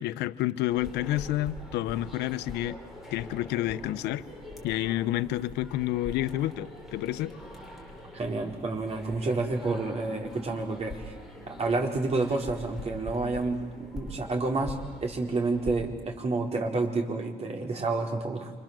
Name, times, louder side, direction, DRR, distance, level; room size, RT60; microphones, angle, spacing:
voice 1, 0.0-2.8 3.1-4.3 4.6-7.3, left 15 dB, 85° left, 14 dB, 0.8 m, -29 dB
sound 1, 0.7-15.8, left 1 dB, ahead, 6.6 m, -44 dB
voice 2, 8.1-11.1 11.5-18.5, right 3 dB, 40° right, 3 dB, 4.6 m, -29 dB
29.0 x 26.0 x 7.6 m, 1.4 s
cardioid pair, 110°, 17 cm